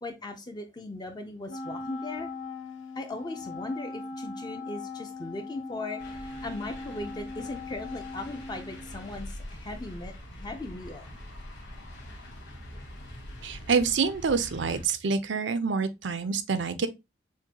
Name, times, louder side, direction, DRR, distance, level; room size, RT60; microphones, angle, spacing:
voice 1, 0.0-2.3 3.0-10.1 10.4-11.0, left 2 dB, 20° left, 0.5 m, -38 dB
Wind instrument woodwind instrument, 1.5-9.1, left 3 dB, 85° left, 0.7 m, -40 dB
sound 1, 6.0-14.8, left 1 dB, 60° left, 1.5 m, -44 dB
voice 2, 13.4-16.9, right 5 dB, 65° right, 0.5 m, -27 dB
6.3 x 2.2 x 2.7 m
head